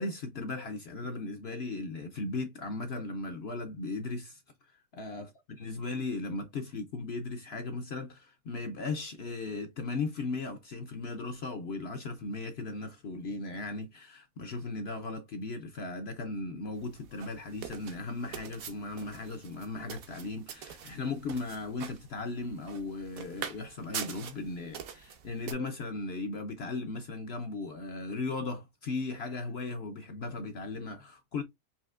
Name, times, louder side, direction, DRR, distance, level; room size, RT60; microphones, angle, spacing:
voice 1, 0.0-4.4 4.9-5.3 5.6-31.4, left 3 dB, 60° left, 0.7 m, -37 dB
sound 1, 16.7-25.5, right 8 dB, 65° right, 1.1 m, -44 dB
5.6 x 2.8 x 2.4 m
omnidirectional pair, 1.7 m